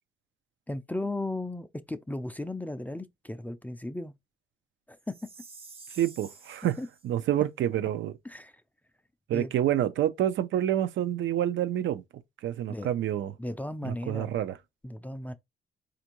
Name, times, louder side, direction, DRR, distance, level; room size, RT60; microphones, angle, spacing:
voice 1, 0.7-4.1 4.9-5.1 6.8-6.9 8.3-8.5 9.3-9.5 12.7-12.9 13.4-14.4 14.8-15.3, left 1 dB, 10° left, 0.4 m, -35 dB
Chime, 5.1-7.1, right 4 dB, 30° right, 0.7 m, -49 dB
voice 2, 5.9-6.8 7.0-8.1 9.3-12.0 12.4-13.3 13.8-14.6, right 11 dB, 70° right, 0.5 m, -28 dB
4.3 x 2.5 x 2.9 m
cardioid pair, 95°, 20 cm